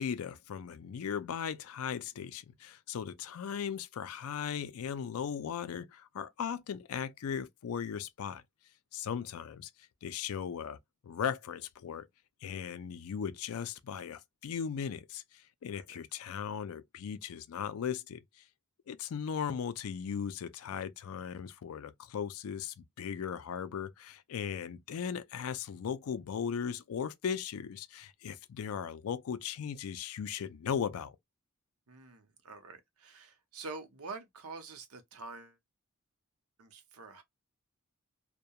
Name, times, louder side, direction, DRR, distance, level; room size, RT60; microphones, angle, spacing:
voice 1, 0.0-8.4 8.9-9.7 10.0-10.8 11.0-12.1 12.4-18.4 18.9-31.2, left 7 dB, 70° left, 0.4 m, -37 dB
voice 2, 31.9-35.6 36.6-37.2, right 3 dB, 75° right, 0.7 m, -46 dB
2.2 x 2.2 x 2.7 m
head